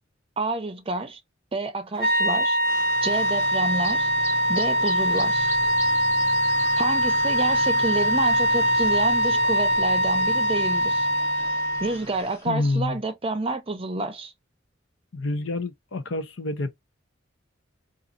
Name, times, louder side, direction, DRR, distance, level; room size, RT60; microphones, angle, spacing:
voice 1, 0.4-1.2 1.5-2.6 3.0-4.1 4.5-5.5 6.8-11.1 11.8-14.3, right 2 dB, 30° right, 0.6 m, -29 dB
sound 1, 2.0-12.0, equal, 45° left, 1.5 m, -22 dB
sound 2, 2.6-12.5, left 1 dB, 15° left, 0.7 m, -39 dB
voice 2, 12.5-13.0 15.1-16.7, left 2 dB, 65° left, 0.6 m, -27 dB
4.0 x 2.5 x 2.4 m
head